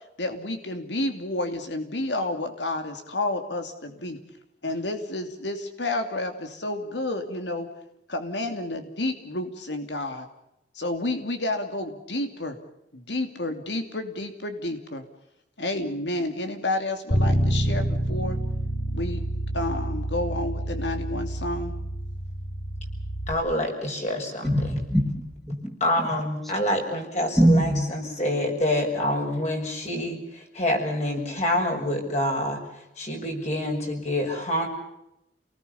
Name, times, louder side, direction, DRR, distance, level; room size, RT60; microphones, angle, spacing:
voice 1, 0.2-4.2 4.6-7.7 8.1-10.3 10.7-12.6 12.9-15.0 15.6-18.4 18.9-19.2 19.5-21.7, left 2 dB, 90° left, 7 dB, 2.8 m, -30 dB
Bass guitar, 17.1-23.3, right 1 dB, 60° left, 4.2 m, -28 dB
voice 2, 23.3-24.5 25.8-32.6 33.0-34.7, left 1 dB, 40° left, 2 dB, 6.8 m, -27 dB
voice 3, 24.4-26.1 27.4-27.9, right 1 dB, ahead, 4 dB, 2.6 m, -23 dB
29.0 x 19.5 x 7.0 m, 0.87 s
head